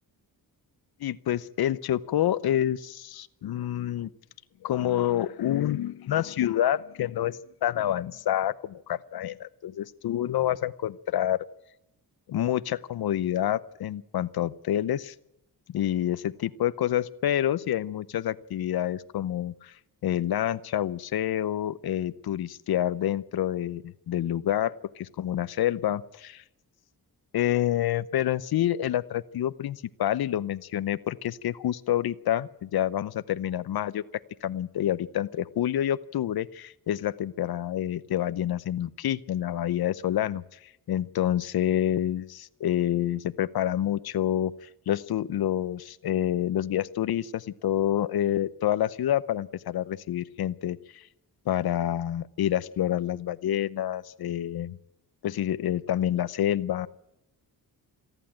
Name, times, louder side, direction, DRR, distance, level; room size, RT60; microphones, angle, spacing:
voice 1, 1.0-4.1 4.6-11.4 12.3-15.1 15.7-26.4 27.3-34.0 34.4-51.1 51.5-54.8 55.2-56.9, left 11 dB, 70° left, 16 dB, 0.8 m, -28 dB
28.0 x 11.0 x 8.9 m, 0.87 s
wide cardioid pair, 130°, 38 cm